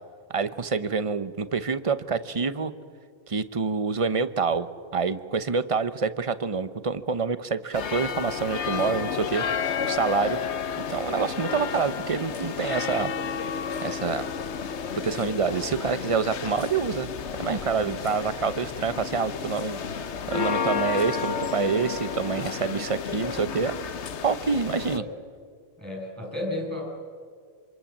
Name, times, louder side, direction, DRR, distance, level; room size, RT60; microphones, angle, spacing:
voice 1, 0.3-2.7 3.3-9.4 9.8-10.4 10.8-13.1 13.8-14.3 15.0-17.1 17.4-19.8 20.3-23.7 24.2-25.0, right 5 dB, 30° right, 13 dB, 0.9 m, -27 dB
sound 1, 7.7-25.0, left 7 dB, 90° left, 1.2 m, -31 dB
voice 2, 17.8-18.2 24.9-25.1 25.8-26.9, left 1 dB, 15° right, -2 dB, 7.7 m, -34 dB
26.5 x 26.0 x 7.4 m, 2.1 s
omnidirectional pair, 1.1 m